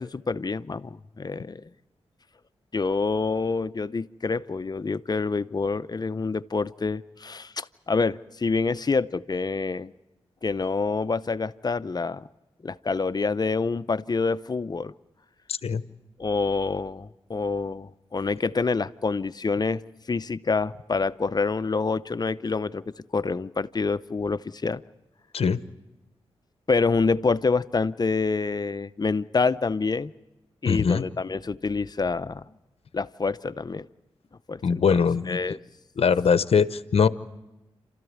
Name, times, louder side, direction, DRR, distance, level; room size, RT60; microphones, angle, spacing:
voice 1, 0.0-1.6 2.7-9.9 10.4-12.3 12.6-14.9 16.2-19.8 20.1-22.8 23.1-24.8 26.7-30.1 30.6-32.4 32.9-33.9 34.5-35.6, left 4 dB, 40° left, 14 dB, 0.7 m, -27 dB
voice 2, 30.6-31.0 34.6-35.4 36.0-37.1, left 6 dB, 65° left, 14 dB, 0.8 m, -21 dB
27.5 x 13.5 x 9.4 m, 1.0 s
cardioid pair, 50°, 11 cm